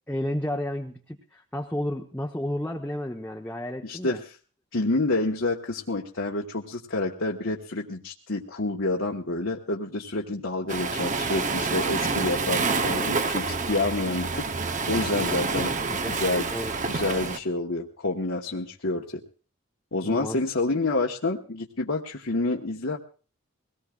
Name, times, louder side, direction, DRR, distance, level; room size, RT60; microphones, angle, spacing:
voice 1, 0.1-4.2 15.4-16.2 16.5-16.8 20.0-20.4, left 1 dB, 10° left, 0 dB, 0.9 m, -32 dB
voice 2, 3.8-4.2 4.7-14.5 14.9-15.7 16.1-16.5 16.9-19.2 19.9-23.0, left 2 dB, 65° left, -1 dB, 1.2 m, -28 dB
Waves surf, 10.7-17.4, right 4 dB, 35° right, 0.8 m, -28 dB
22.5 x 18.0 x 2.4 m, 0.38 s
head